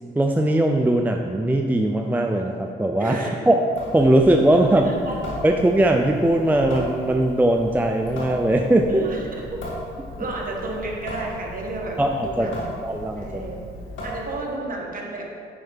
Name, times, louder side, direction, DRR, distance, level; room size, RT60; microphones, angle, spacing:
voice 1, 0.2-3.2 3.5-3.6 3.9-4.9 5.4-9.0 12.0-12.5 12.8-13.4, right 1 dB, 10° right, 3 dB, 0.5 m, -20 dB
voice 2, 3.0-3.4 4.8-5.2 8.9-9.6 10.2-12.7 13.2-13.6 14.0-15.3, right 2 dB, 45° right, -1 dB, 1.7 m, -32 dB
Water tap faucet / Sink (filling or washing) / Drip, 3.7-14.6, left 1 dB, 75° left, 2.0 m, -36 dB
9.4 x 4.5 x 5.5 m, 2.2 s
cardioid pair, 90°, 20 cm